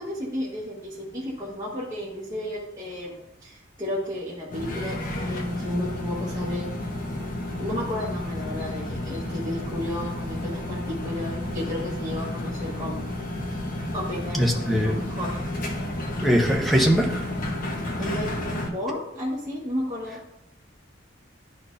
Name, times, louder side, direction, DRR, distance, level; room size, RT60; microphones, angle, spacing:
voice 1, 0.0-6.7 7.6-13.1 13.9-15.5 18.0-20.2, left 1 dB, 20° right, -9 dB, 1.4 m, -33 dB
sound 1, 4.5-18.7, left 1 dB, 45° left, 1.1 m, -31 dB
voice 2, 14.3-15.0 16.2-17.2, equal, ahead, 0 dB, 0.9 m, -21 dB
11.0 x 4.4 x 2.6 m, 0.86 s
head